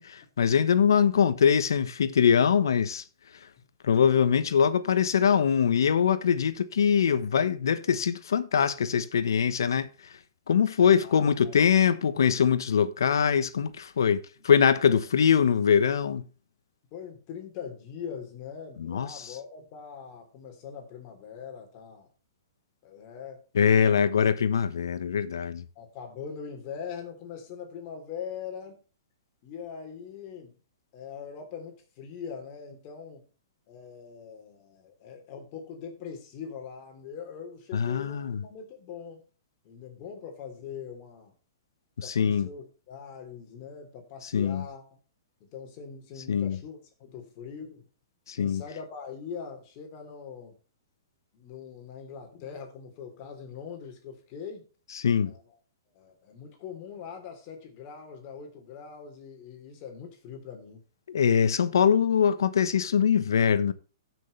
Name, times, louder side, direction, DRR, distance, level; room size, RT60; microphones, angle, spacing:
voice 1, 0.0-3.0 3.8-9.9 10.5-16.2 18.8-19.4 23.5-25.6 37.7-38.4 42.0-42.5 44.2-44.6 46.3-46.6 48.3-48.6 54.9-55.3 61.1-63.7, left 7 dB, 80° left, 1.1 m, -23 dB
voice 2, 11.0-11.6 14.9-15.0 16.9-22.1 22.8-23.4 23.7-24.0 25.7-28.8 29.4-30.5 30.9-33.3 33.7-39.2 39.6-41.3 42.0-45.0 45.5-47.8 48.3-50.5 51.3-54.7 55.2-55.4 55.9-60.8, left 7 dB, 35° left, 3.3 m, -42 dB
16.0 x 6.3 x 3.2 m
hypercardioid pair, 145°, 2 cm